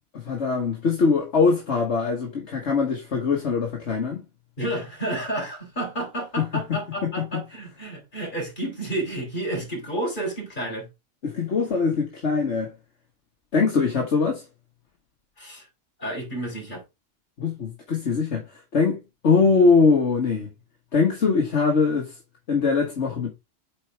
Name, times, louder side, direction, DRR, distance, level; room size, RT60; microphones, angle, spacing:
voice 1, 0.1-4.2 6.4-6.5 7.0-7.1 11.2-12.7 13.5-14.4 17.4-18.4 18.7-19.0 19.2-20.5 20.9-22.1 22.5-23.3, left 4 dB, 65° left, 1.8 m, -22 dB
voice 2, 4.6-10.9 15.4-15.7 16.0-16.8, right 1 dB, 40° left, 3.6 m, -30 dB
8.4 x 4.6 x 3.3 m
omnidirectional pair, 1.3 m